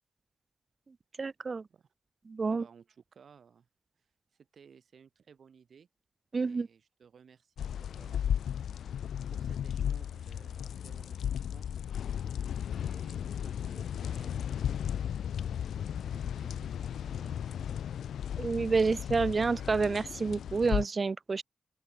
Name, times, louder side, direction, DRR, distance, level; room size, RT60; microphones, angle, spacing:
voice 1, 1.2-1.6 2.3-2.6 6.3-6.7 18.4-21.4, right 4 dB, 45° right, 0.5 m, -29 dB
voice 2, 2.4-3.7 4.4-5.9 6.4-8.4 8.8-9.0 9.3-11.7 12.7-14.9 15.7-18.0, right 6 dB, 70° right, 5.0 m, -58 dB
sound 1, 7.6-20.9, left 9 dB, 90° left, 1.4 m, -35 dB
open air
cardioid pair, 60°, 0 cm